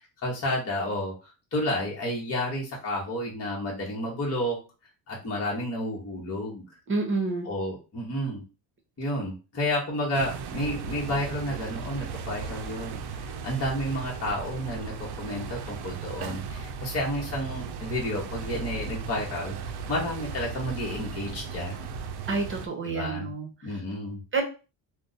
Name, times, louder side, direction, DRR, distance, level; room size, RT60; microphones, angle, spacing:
voice 1, 0.2-4.6 5.1-6.6 7.5-8.4 9.0-21.9 22.8-23.3 23.6-24.2, left 1 dB, 30° left, -4 dB, 1.0 m, -31 dB
voice 2, 6.9-7.5 22.3-23.7 24.3-24.4, right 3 dB, 25° right, 2 dB, 0.9 m, -29 dB
sound 1, 10.1-22.7, right 5 dB, 60° right, 0.6 m, -36 dB
2.5 x 2.2 x 4.0 m, 0.33 s
cardioid pair, 105°, 45 cm